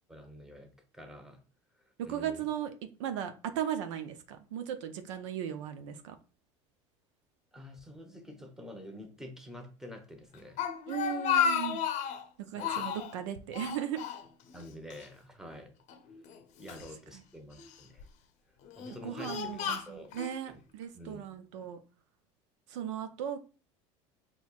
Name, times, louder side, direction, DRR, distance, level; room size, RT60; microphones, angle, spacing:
voice 1, 0.1-1.4 2.0-2.4 7.5-10.6 12.5-12.9 14.5-15.7 16.6-18.1 18.8-20.1 20.5-20.6 20.9-21.3, left 1 dB, 5° right, 0.9 m, -48 dB
voice 2, 2.1-2.7 3.0-6.2 10.9-11.8 12.5-14.0 19.0-21.8 22.7-23.4, right 10 dB, 85° right, 0.5 m, -37 dB
Speech, 10.3-12.2 12.6-13.1 13.5-14.6 14.9-15.1 15.9-16.9 17.6-18.0 18.6-20.3, left 7 dB, 50° left, 0.6 m, -33 dB
4.2 x 3.0 x 2.3 m
supercardioid pair, 95°, 15 cm